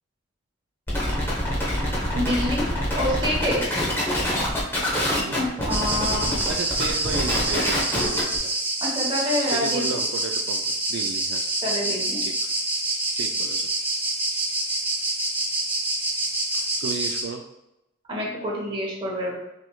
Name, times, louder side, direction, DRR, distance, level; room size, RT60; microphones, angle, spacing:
sound 1, 0.9-8.4, left 1 dB, 10° left, 0.9 m, -25 dB
voice 1, 2.1-2.7 3.0-3.6 5.6-6.3 8.8-10.0 11.6-12.2 18.1-19.4, equal, 25° right, -3 dB, 1.1 m, -27 dB
voice 2, 5.1-5.6 6.5-8.5 9.4-11.4 12.2-12.6 13.2-13.7 16.5-17.4, right 5 dB, 65° right, 3 dB, 0.3 m, -34 dB
sound 2, 5.7-17.2, right 2 dB, 10° right, 0.6 m, -26 dB
6.0 x 3.1 x 2.3 m, 0.88 s
head